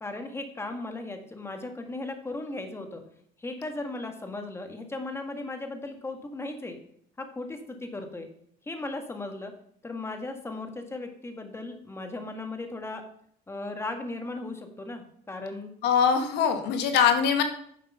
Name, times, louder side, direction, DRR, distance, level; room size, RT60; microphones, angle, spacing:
voice 1, 0.0-3.0 3.4-6.8 7.2-8.3 8.6-9.5 9.8-13.0 13.5-15.7, left 2 dB, 15° left, 5 dB, 1.6 m, -36 dB
voice 2, 15.8-17.4, left 7 dB, 90° left, 6 dB, 1.3 m, -22 dB
9.6 x 6.5 x 5.4 m, 0.66 s
cardioid pair, 110°, 17 cm